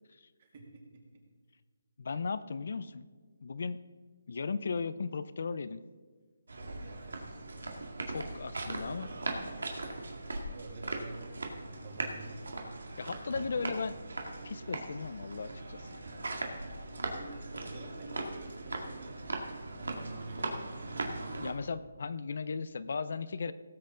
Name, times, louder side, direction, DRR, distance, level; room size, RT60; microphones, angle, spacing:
voice 1, 0.4-1.2 6.7-7.4 10.4-12.4 16.9-19.2 19.8-20.8, right 3 dB, 40° right, 0 dB, 2.6 m, -48 dB
voice 2, 2.0-3.1 3.4-3.8 4.3-5.8 8.1-9.1 13.0-14.0 14.4-16.0 21.4-23.5, left 4 dB, 55° left, 14 dB, 0.5 m, -36 dB
sound 1, 6.5-21.5, right 2 dB, 85° right, 2.1 m, -39 dB
sound 2, 14.9-20.2, equal, 55° right, 2.8 m, -58 dB
18.0 x 7.7 x 3.8 m, 1.5 s
hypercardioid pair, 170°, 0 cm